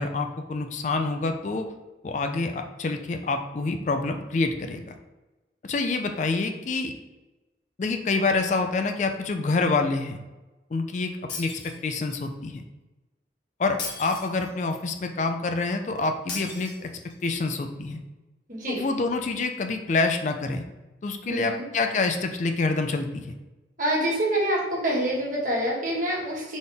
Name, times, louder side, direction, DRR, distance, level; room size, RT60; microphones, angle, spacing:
voice 1, 0.0-1.7 2.0-4.9 5.6-6.9 7.8-10.2 10.7-11.1 11.4-12.6 13.6-16.9 17.2-18.0 18.7-20.6 21.0-23.3, left 3 dB, 40° left, 6 dB, 0.4 m, -27 dB
Shatter, 11.3-12.3 13.8-14.8 16.3-17.3, left 4 dB, 70° left, 1.4 m, -37 dB
voice 2, 18.5-18.8 21.3-21.7 23.8-26.6, right 1 dB, 45° right, -4 dB, 1.5 m, -26 dB
4.1 x 3.6 x 3.4 m, 1.1 s
head